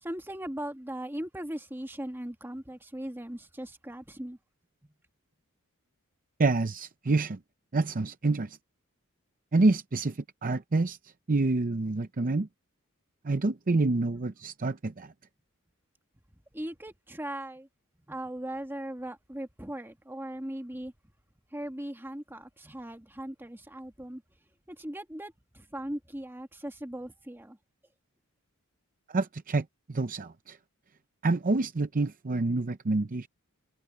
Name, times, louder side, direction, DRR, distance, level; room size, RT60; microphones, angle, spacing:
voice 1, 0.0-4.4 4.8-4.9 16.5-17.7 18.1-20.9 21.5-24.2 24.7-27.6, right 1 dB, 10° right, 1.5 m, -39 dB
voice 2, 6.4-7.4 7.7-8.6 9.5-11.0 11.3-12.5 13.2-15.1 29.1-30.6 31.2-33.3, right 3 dB, 40° right, 0.6 m, -27 dB
head